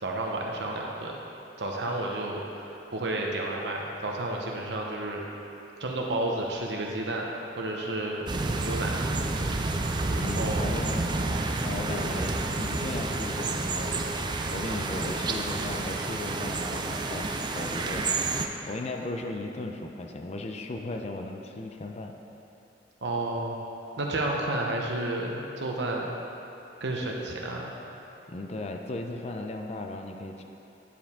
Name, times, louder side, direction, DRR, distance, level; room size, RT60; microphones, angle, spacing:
voice 1, 0.0-1.1 1.6-2.6 2.9-5.2 5.8-7.3 7.6-8.2 8.6-8.9 10.4-10.7 23.0-23.7 24.0-26.1 26.8-27.7, right 2 dB, 75° right, -1 dB, 0.9 m, -31 dB
sound 1, 8.3-18.5, right 3 dB, 25° right, 0.4 m, -29 dB
voice 2, 10.2-14.1 14.5-18.1 18.7-22.1 28.3-30.4, left 2 dB, 40° left, 3 dB, 0.5 m, -36 dB
10.0 x 4.6 x 3.6 m, 2.9 s
head